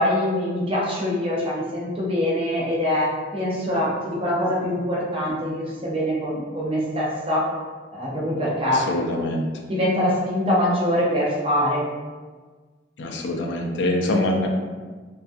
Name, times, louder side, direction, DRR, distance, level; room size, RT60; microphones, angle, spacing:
voice 1, 0.0-7.4 7.9-8.8 9.5-11.8, left 1 dB, 30° right, -6 dB, 0.6 m, -24 dB
voice 2, 8.7-9.5 13.0-14.5, left 1 dB, 75° left, 1 dB, 0.4 m, -24 dB
2.3 x 2.3 x 2.5 m, 1.4 s
head